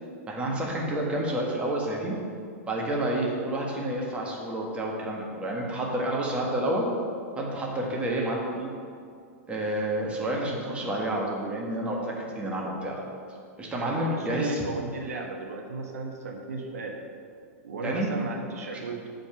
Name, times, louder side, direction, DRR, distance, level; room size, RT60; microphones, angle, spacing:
voice 1, 0.3-2.1 2.7-6.9 7.4-8.7 9.5-13.0 13.6-14.6 17.8-18.1, right 1 dB, 15° right, -2 dB, 1.5 m, -29 dB
voice 2, 13.8-17.0 17.6-19.1, right 3 dB, 85° right, 2 dB, 1.2 m, -35 dB
7.0 x 5.3 x 6.1 m, 2.3 s
hypercardioid pair, 130°, 8 cm